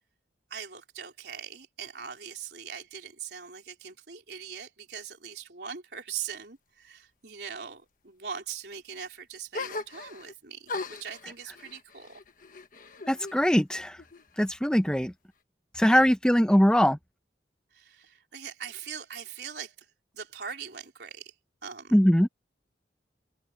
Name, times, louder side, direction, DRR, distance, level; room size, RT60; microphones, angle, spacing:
voice 1, 0.5-12.2 15.9-16.0 17.7-21.3 21.6-22.0, right 7 dB, 65° right, 3.9 m, -41 dB
sound 1, 9.5-10.3 10.7-13.4 13.7-14.6, left 3 dB, 45° left, 1.3 m, -39 dB
voice 2, 13.1-14.0 14.4-15.1 15.7-17.0 21.9-22.3, equal, 5° left, 0.7 m, -21 dB
head